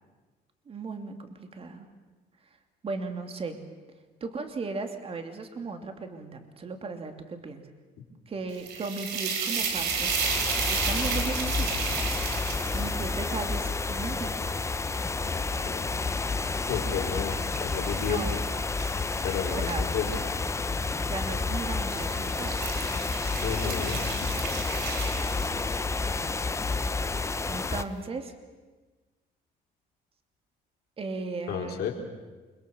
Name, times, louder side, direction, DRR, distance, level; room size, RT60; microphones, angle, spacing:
voice 1, 0.7-1.9 2.8-3.6 4.2-7.7 8.3-10.2 10.7-11.8 12.7-14.4 18.0-18.4 19.5-19.9 21.1-22.6 27.4-28.3 31.0-31.9, right 4 dB, 35° right, 6 dB, 2.7 m, -36 dB
sound 1, 8.5-15.7 16.3-20.2 21.1-21.4 21.8-26.0, right 6 dB, 80° right, 3.8 m, -34 dB
sound 2, 9.6-27.8, left 3 dB, 15° left, 0.8 m, -30 dB
voice 2, 15.2-15.9 16.7-18.2 19.2-20.1 23.4-24.3 31.5-31.9, left 8 dB, 70° left, 1 dB, 4.3 m, -32 dB
28.0 x 22.0 x 7.1 m, 1.3 s
cardioid pair, 110°, 17 cm